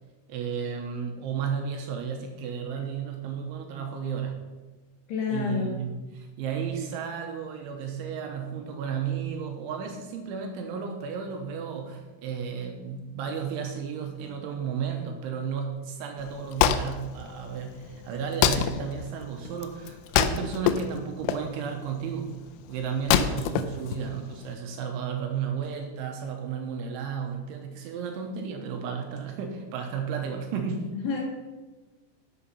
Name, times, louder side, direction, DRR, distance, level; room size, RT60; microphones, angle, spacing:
voice 1, 0.3-4.4 5.3-22.4 22.7-30.9, right 6 dB, 75° right, 3 dB, 3.1 m, -33 dB
voice 2, 5.1-5.8 30.9-31.2, left 6 dB, 60° left, -2 dB, 3.6 m, -29 dB
Wood, 16.2-24.5, left 10 dB, 90° left, 2.7 m, -27 dB
11.0 x 7.0 x 5.6 m, 1.2 s
omnidirectional pair, 5.9 m